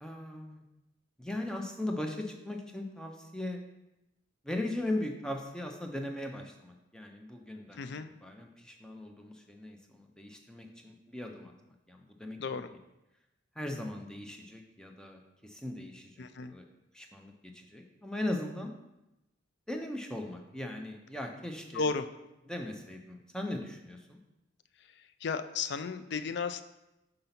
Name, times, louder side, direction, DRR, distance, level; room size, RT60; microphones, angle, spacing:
voice 1, 0.0-0.6 1.2-3.6 4.4-7.8 8.2-11.5 11.9-12.4 13.6-16.6 16.9-18.7 19.7-21.9 22.4-24.2, left 1 dB, 5° left, 3 dB, 0.6 m, -39 dB
voice 2, 7.8-8.1 12.4-12.7 16.2-16.5 21.7-22.1 25.2-26.6, left 4 dB, 55° left, 10 dB, 0.4 m, -34 dB
5.5 x 3.9 x 5.7 m, 0.94 s
head